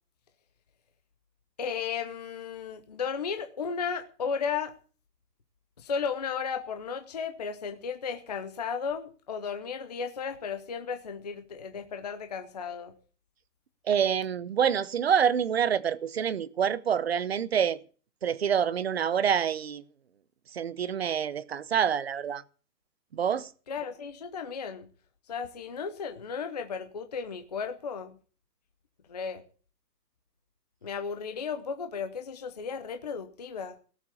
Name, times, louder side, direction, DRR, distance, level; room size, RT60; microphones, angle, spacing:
voice 1, 1.6-4.7 5.8-12.9 23.7-24.9 25.3-28.2 29.1-29.4 30.8-33.8, left 6 dB, 25° left, 0.7 m, -34 dB
voice 2, 13.9-17.8 18.2-19.8 20.5-22.4 23.1-23.5, right 8 dB, 40° right, 0.7 m, -27 dB
18.0 x 7.4 x 8.5 m
hypercardioid pair, 180°, 49 cm